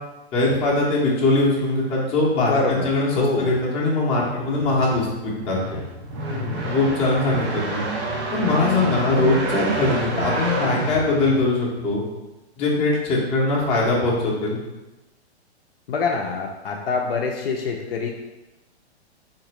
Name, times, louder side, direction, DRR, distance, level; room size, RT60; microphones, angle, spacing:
voice 1, 0.3-5.8 6.6-7.9 8.3-12.0 12.6-14.6, left 2 dB, 20° left, -5 dB, 0.7 m, -21 dB
voice 2, 2.4-3.6 6.3-6.7 15.9-18.1, left 4 dB, 60° left, 1 dB, 0.6 m, -25 dB
sound 1, 4.3-11.9, right 1 dB, 25° right, 0.4 m, -29 dB
3.8 x 2.5 x 3.0 m, 1.1 s
hypercardioid pair, 145°, 34 cm